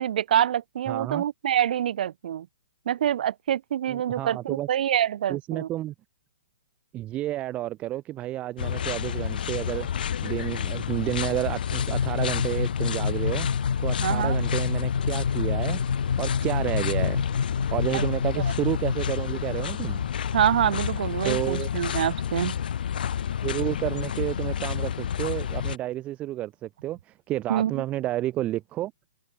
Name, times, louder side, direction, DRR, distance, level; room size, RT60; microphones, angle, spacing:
voice 1, 0.0-2.5 2.9-5.7 14.0-14.4 17.9-18.0 20.3-22.6 27.5-27.8, right 10 dB, 60° right, 4.7 m, -26 dB
voice 2, 0.9-1.2 3.9-4.7 5.3-5.9 6.9-9.9 10.2-15.8 16.2-17.2 17.7-20.0 21.2-21.7 23.4-28.9, right 14 dB, 25° right, 5.0 m, -30 dB
sound 1, 8.6-25.8, left 9 dB, 65° left, 2.5 m, -30 dB
sound 2, 11.8-19.4, left 6 dB, 80° left, 4.7 m, -29 dB
hypercardioid pair, 135°, 5 cm